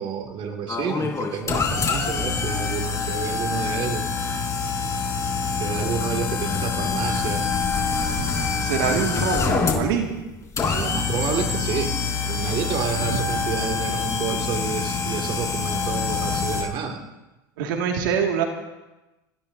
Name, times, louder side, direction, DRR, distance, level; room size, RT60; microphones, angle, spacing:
voice 1, 0.0-4.1 5.6-7.5 10.6-11.9 12.2-17.0, right 6 dB, 50° right, 3 dB, 2.5 m, -29 dB
sound 1, 0.7-16.6, left 5 dB, 30° left, 4.1 m, -26 dB
voice 2, 8.6-10.1 13.0-13.2 17.6-18.4, right 7 dB, 80° right, 2 dB, 2.2 m, -24 dB
30.0 x 16.5 x 2.8 m, 1.0 s
hypercardioid pair, 90°, 11 cm